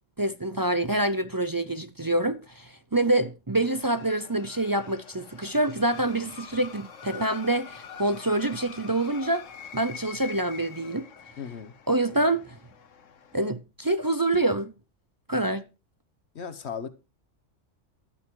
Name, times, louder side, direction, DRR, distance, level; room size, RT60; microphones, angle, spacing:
voice 1, 0.2-9.4 9.7-11.1 11.9-12.6 13.3-14.7 15.3-15.6, right 1 dB, 30° right, 0.4 m, -26 dB
sound 1, 3.6-13.5, left 7 dB, 80° left, 1.4 m, -46 dB
sound 2, 5.9-11.0, left 1 dB, 5° right, 5.3 m, -57 dB
voice 2, 11.4-11.7 16.3-16.9, left 6 dB, 60° left, 1.3 m, -36 dB
12.0 x 9.1 x 4.7 m
omnidirectional pair, 1.3 m